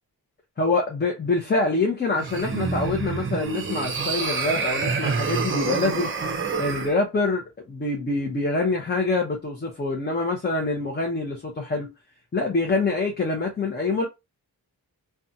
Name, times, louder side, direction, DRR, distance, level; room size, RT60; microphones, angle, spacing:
voice 1, 0.6-6.1 6.6-11.9 12.3-14.1, left 3 dB, 25° left, 0.6 m, -25 dB
sound 1, 2.2-6.9, right 4 dB, 30° right, 0.5 m, -27 dB
2.5 x 2.3 x 2.6 m
wide cardioid pair, 145°, 39 cm